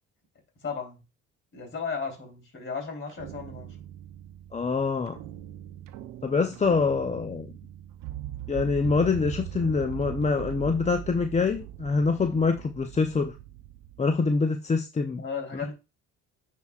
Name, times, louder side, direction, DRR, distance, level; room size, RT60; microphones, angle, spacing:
voice 1, 0.6-1.0 1.5-3.8 15.2-15.7, left 5 dB, 40° left, 2 dB, 3.6 m, -35 dB
sound 1, 3.1-14.4, right 12 dB, 80° right, 0.7 m, -40 dB
voice 2, 4.5-5.2 6.2-7.5 8.5-13.3 14.0-15.2 15.6-15.7, left 4 dB, 20° left, 6 dB, 0.6 m, -25 dB
9.3 x 4.6 x 2.4 m, 0.28 s
cardioid pair, 85°, 32 cm